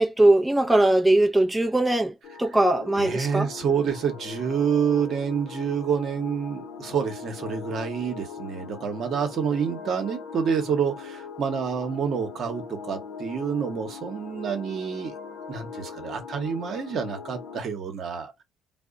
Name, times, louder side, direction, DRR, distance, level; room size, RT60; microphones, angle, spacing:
voice 1, 0.0-3.5, right 1 dB, 10° right, 0.5 m, -20 dB
sound 1, 2.2-17.6, left 6 dB, 70° left, 0.6 m, -40 dB
voice 2, 3.0-15.1 15.5-18.4, right 7 dB, 55° right, 0.9 m, -28 dB
2.1 x 2.1 x 3.7 m
supercardioid pair, 70°, 0 cm